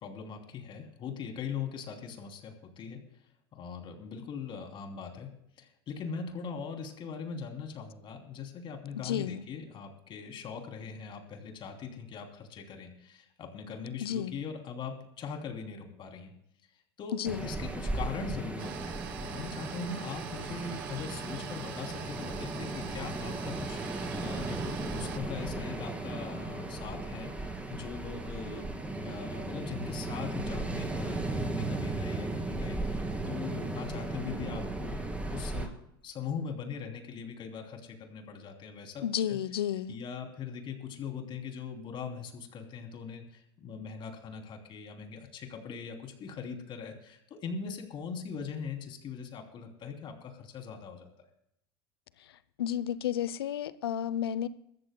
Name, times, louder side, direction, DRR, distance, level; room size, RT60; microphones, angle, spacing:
voice 1, 0.0-3.0 3.5-5.3 5.6-16.3 17.0-17.2 17.4-35.7 36.0-39.4 39.9-51.1, left 6 dB, 40° left, 3.1 m, -41 dB
voice 2, 8.9-9.4 14.0-14.4 17.1-17.5 39.0-40.0 52.6-54.5, left 10 dB, 80° left, 0.7 m, -32 dB
Ocean, 17.2-35.7, right 2 dB, 10° right, 2.6 m, -36 dB
sound 1, 18.6-25.2, right 12 dB, 70° right, 1.0 m, -44 dB
22.5 x 14.0 x 2.3 m
hypercardioid pair, 90°, 12 cm